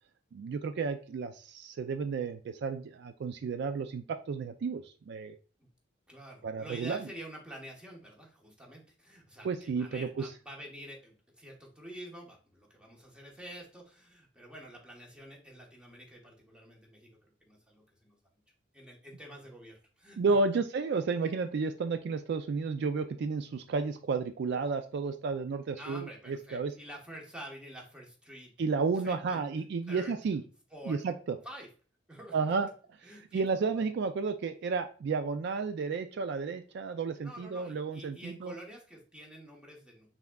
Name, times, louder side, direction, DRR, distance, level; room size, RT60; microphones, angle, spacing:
voice 1, 0.3-5.3 6.4-7.0 9.4-10.3 20.2-26.7 28.6-30.4 30.9-31.4 32.3-32.7 33.3-38.5, right 4 dB, 60° right, 9 dB, 0.3 m, -32 dB
voice 2, 6.1-18.2 18.7-20.4 21.2-21.3 25.7-28.5 29.0-29.5 29.9-30.1 30.7-31.0 31.4-31.7 32.1-32.7 33.0-33.5 33.7-33.9 37.2-40.2, equal, 5° right, -2 dB, 1.1 m, -48 dB
5.6 x 3.6 x 2.3 m, 0.38 s
head